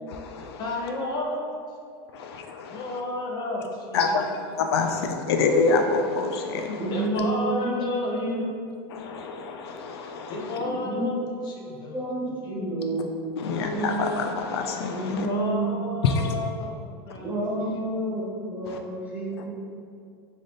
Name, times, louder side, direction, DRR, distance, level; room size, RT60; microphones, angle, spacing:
voice 1, 0.1-0.6 2.1-3.0 3.9-4.3 4.6-6.9 8.9-10.6 13.4-15.3 16.0-16.3 18.7-18.8, left 4 dB, 85° left, 4 dB, 0.4 m, -27 dB
voice 2, 0.6-1.6 2.7-4.3 6.9-8.6 10.3-12.0 12.4-12.9 15.1-18.3, left 2 dB, 35° left, -1 dB, 0.6 m, -32 dB
voice 3, 6.8-8.4 10.6-11.1 11.9-14.0 14.9-15.9 17.2-18.2 18.5-19.5, right 2 dB, 10° right, -6 dB, 0.9 m, -30 dB
3.4 x 2.6 x 3.8 m, 2.3 s
supercardioid pair, 135°, 13 cm